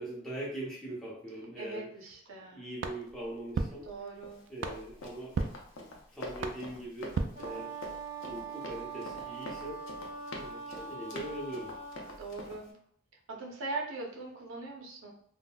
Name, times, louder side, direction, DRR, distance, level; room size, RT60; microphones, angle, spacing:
voice 1, 0.0-1.9 2.4-3.9 4.5-5.3 5.7-7.8 8.2-9.8 10.3-11.7, right 1 dB, ahead, -7 dB, 0.6 m, -41 dB
voice 2, 1.6-2.6 3.9-4.4 12.2-12.7 13.3-15.1, right 3 dB, 85° right, 0 dB, 0.7 m, -40 dB
sound 1, 2.8-8.1, right 4 dB, 70° right, 0.3 m, -38 dB
Run, 4.2-12.7, left 2 dB, 75° left, 0.6 m, -46 dB
Wind instrument woodwind instrument, 7.3-12.2, right 4 dB, 25° right, 0.8 m, -42 dB
3.5 x 2.1 x 2.2 m, 0.64 s
head